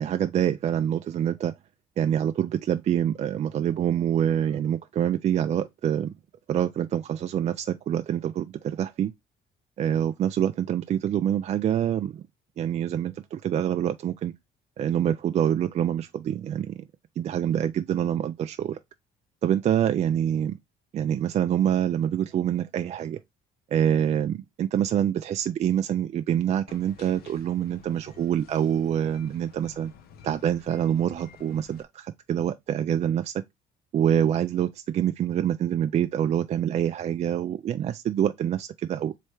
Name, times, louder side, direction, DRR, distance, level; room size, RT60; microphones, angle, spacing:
voice 1, 0.0-1.5 2.0-6.1 6.5-9.1 9.8-12.2 12.6-14.3 14.8-16.8 17.2-18.8 19.4-20.6 20.9-23.2 23.7-29.9 30.2-33.3 33.9-39.1, right 10 dB, 40° right, 0.4 m, -26 dB
sound 1, 26.7-31.8, left 7 dB, 65° left, 0.7 m, -51 dB
3.3 x 3.2 x 4.6 m
cardioid pair, 110°, 17 cm